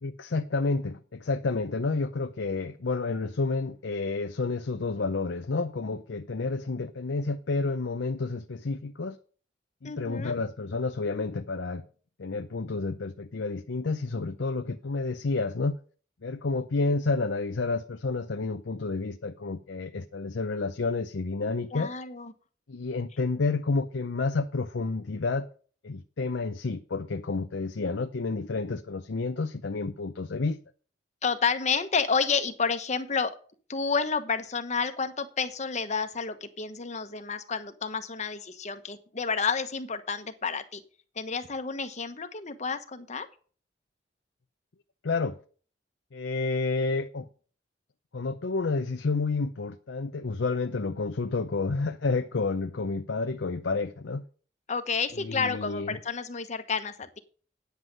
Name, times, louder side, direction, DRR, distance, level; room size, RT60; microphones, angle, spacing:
voice 1, 0.0-9.2 9.8-11.8 12.2-15.8 16.2-21.9 22.7-25.5 25.8-30.6 45.0-45.4 46.1-47.3 48.1-54.2 55.2-56.0, left 3 dB, 85° left, 0.6 m, -30 dB
voice 2, 9.8-10.3 21.7-22.3 31.2-33.4 33.7-40.8 41.2-43.3 54.7-57.2, left 5 dB, 40° left, 1.1 m, -30 dB
9.4 x 8.1 x 5.3 m
head